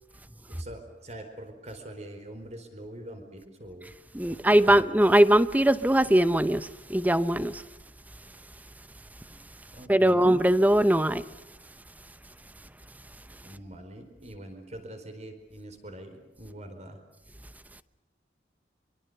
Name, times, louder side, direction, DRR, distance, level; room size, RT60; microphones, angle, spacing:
voice 1, 0.5-3.9 4.3-4.8 9.7-10.3 13.4-17.0, right 1 dB, 40° right, 4.5 m, -43 dB
voice 2, 4.1-7.6 9.9-11.2, right 1 dB, 10° right, 0.8 m, -21 dB
25.5 x 24.0 x 6.9 m
head